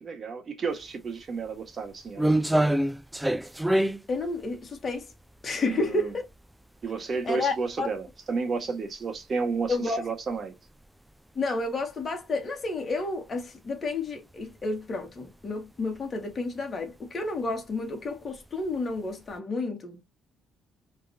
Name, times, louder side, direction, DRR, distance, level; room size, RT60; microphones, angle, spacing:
voice 1, 0.0-2.7 5.6-6.1 6.8-10.5, right 4 dB, 40° right, 1.6 m, -32 dB
sound 1, 0.8-0.9 1.4-6.5 6.8-7.0 7.7-7.8 8.1-8.2 9.2-9.3 9.6-9.7 10.3-10.4 10.7-10.8 12.9-13.0 14.3-14.6 15.0-15.4 15.8-16.0 16.3-16.4 17.5-17.7 18.3-19.0 19.3-19.4, right 1 dB, 5° right, 0.4 m, -26 dB
voice 2, 4.1-5.1 5.4-6.3 7.2-7.9 9.7-10.1 11.4-20.0, left 3 dB, 35° left, 1.7 m, -31 dB
4.7 x 3.4 x 2.8 m
cardioid pair, 90°, 0 cm